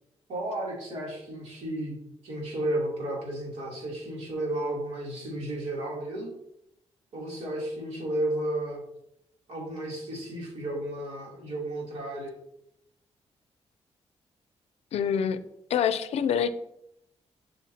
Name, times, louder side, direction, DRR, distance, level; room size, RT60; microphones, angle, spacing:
voice 1, 0.3-2.0 2.2-6.3 7.1-8.8 9.5-12.3, right 1 dB, 90° right, -3 dB, 2.9 m, -33 dB
voice 2, 14.9-15.4 15.7-16.5, left 8 dB, 70° left, 12 dB, 0.5 m, -25 dB
7.3 x 6.3 x 2.8 m, 0.79 s
wide cardioid pair, 180°, 11 cm